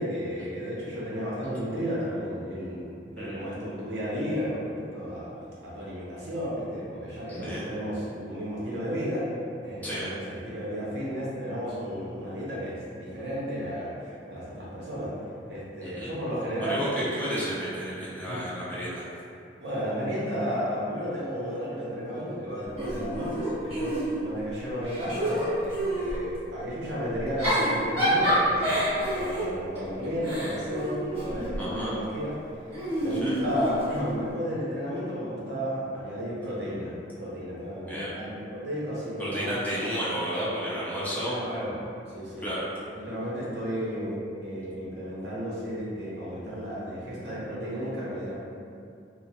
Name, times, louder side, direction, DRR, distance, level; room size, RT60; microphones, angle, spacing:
voice 1, 0.0-9.3 9.6-17.1 18.2-18.4 19.6-32.3 33.0-39.6 40.9-41.7 42.1-42.5 42.9-48.3, equal, 70° right, -8 dB, 0.8 m, -33 dB
voice 2, 7.3-7.6 9.8-10.1 15.8-16.1 16.6-19.1 31.6-31.9 33.1-33.4 37.9-38.1 39.2-41.4 42.4-42.6, equal, 10° left, -9 dB, 0.5 m, -32 dB
Giggle / Chuckle chortle, 22.8-24.4 24.8-26.2 27.2-31.7 32.7-34.1, equal, 35° right, 1.2 m, -28 dB
2.9 x 2.0 x 2.8 m, 2.5 s
head